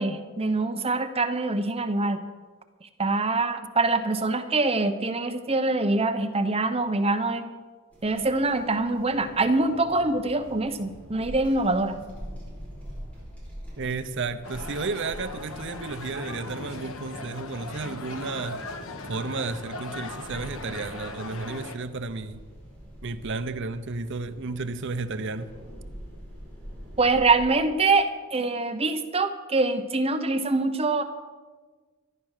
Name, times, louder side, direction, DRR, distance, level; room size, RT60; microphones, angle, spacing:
voice 1, 0.0-2.2 3.0-7.5 8.0-12.0 27.0-31.0, right 3 dB, 25° right, 7 dB, 0.9 m, -24 dB
sound 1, 7.9-27.6, equal, 5° left, 4.9 m, -44 dB
voice 2, 13.8-18.6 19.1-22.4 23.0-25.5, right 3 dB, 55° right, 10 dB, 0.7 m, -32 dB
sound 2, 14.4-21.8, left 3 dB, 65° left, 1.2 m, -39 dB
14.0 x 10.5 x 6.5 m, 1.4 s
head